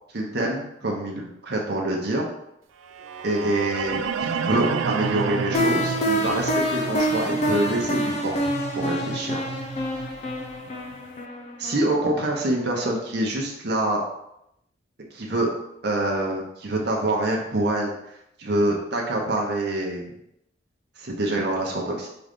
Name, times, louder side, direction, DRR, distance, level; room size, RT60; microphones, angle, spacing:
voice 1, 0.1-2.2 3.2-8.3 8.7-9.4 11.6-14.0 15.1-15.5 15.8-17.9 18.4-20.1 21.0-22.1, right 1 dB, 55° right, -1 dB, 0.9 m, -26 dB
sound 1, 2.9-11.0, right 5 dB, 80° right, 0.4 m, -31 dB
sound 2, 5.5-12.3, equal, 35° left, 0.6 m, -27 dB
3.9 x 3.8 x 3.6 m, 0.80 s
head